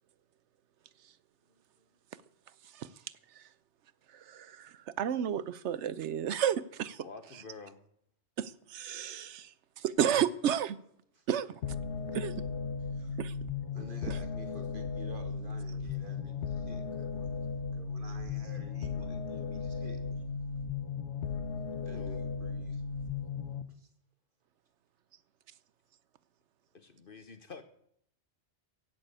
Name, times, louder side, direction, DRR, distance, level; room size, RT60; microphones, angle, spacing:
voice 1, 4.1-7.0 7.3-7.4 8.4-10.8 11.3-11.6 12.1-12.3 13.2-13.3 14.1-14.2, right 9 dB, 75° right, 1.0 m, -32 dB
voice 2, 7.0-7.8 21.9-22.2 26.7-27.6, left 4 dB, 50° left, 1.2 m, -48 dB
sound 1, 11.6-23.6, left 5 dB, 75° left, 1.1 m, -36 dB
voice 3, 13.7-17.5 17.7-20.2 21.8-22.8 23.7-23.9, right 2 dB, 45° right, 2.3 m, -51 dB
16.5 x 8.1 x 8.3 m
omnidirectional pair, 1.2 m